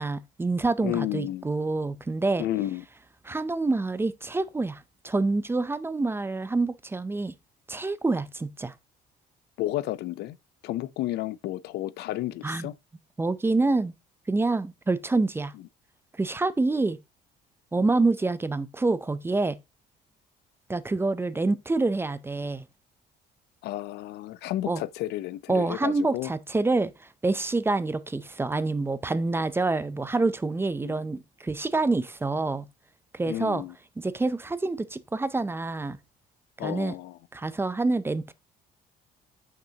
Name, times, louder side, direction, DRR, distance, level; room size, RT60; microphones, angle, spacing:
voice 1, 0.0-2.4 3.2-7.3 7.7-8.7 12.4-12.7 13.2-13.9 14.3-15.5 16.2-17.0 17.7-19.6 20.7-22.6 24.7-24.8 25.5-26.9 27.2-32.6 33.1-33.6 34.0-36.0 36.6-37.0 37.3-38.3, right 3 dB, 15° right, 0.5 m, -27 dB
voice 2, 0.8-1.5 2.4-2.8 9.6-10.4 10.6-12.7 23.6-26.3 30.8-30.9 33.3-33.7 36.6-37.2, left 14 dB, 75° left, 0.5 m, -32 dB
8.9 x 6.0 x 2.8 m
cardioid pair, 110°, 17 cm